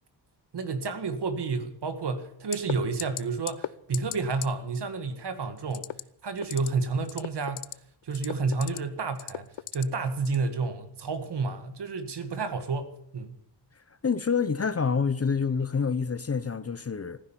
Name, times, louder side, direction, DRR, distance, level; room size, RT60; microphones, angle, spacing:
voice 1, 0.5-5.9 6.2-7.7 8.0-13.4, right 4 dB, 60° right, 1.9 m, -30 dB
sound 1, 2.5-2.7 3.0-3.2 3.5-3.7 3.9-4.2 4.4-4.5 5.7-6.0 6.4-6.7 7.0-7.7 8.1-8.8 9.2-9.8 10.2-10.4, left 13 dB, 75° left, 0.6 m, -34 dB
voice 2, 14.0-17.2, left 5 dB, 30° left, 0.7 m, -27 dB
15.0 x 10.0 x 9.2 m
wide cardioid pair, 140°, 45 cm